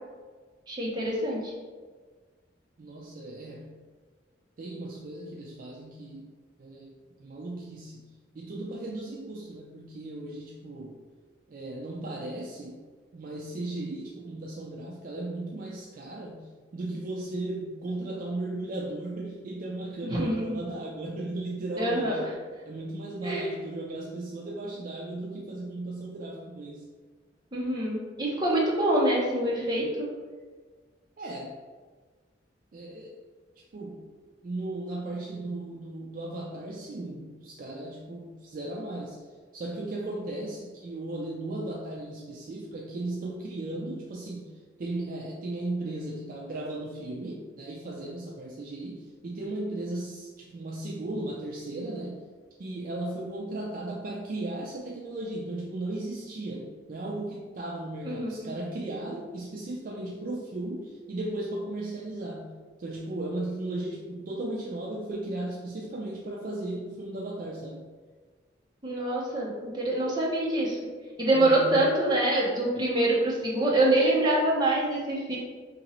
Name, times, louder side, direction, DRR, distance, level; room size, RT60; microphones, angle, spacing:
voice 1, 0.7-1.5 20.0-20.6 21.8-22.3 23.2-23.5 27.5-30.1 58.0-58.6 68.8-70.8 71.2-75.4, right 1 dB, 25° right, -4 dB, 0.7 m, -25 dB
voice 2, 2.8-3.8 4.6-6.3 6.6-8.1 8.3-11.0 11.5-12.8 13.1-22.4 22.7-26.9 31.2-31.5 32.7-33.2 33.7-34.1 34.4-39.2 39.5-44.5 44.8-52.2 52.6-62.5 62.8-67.9 71.3-71.8, right 2 dB, 45° right, -1 dB, 0.3 m, -36 dB
2.8 x 2.7 x 4.1 m, 1.4 s
head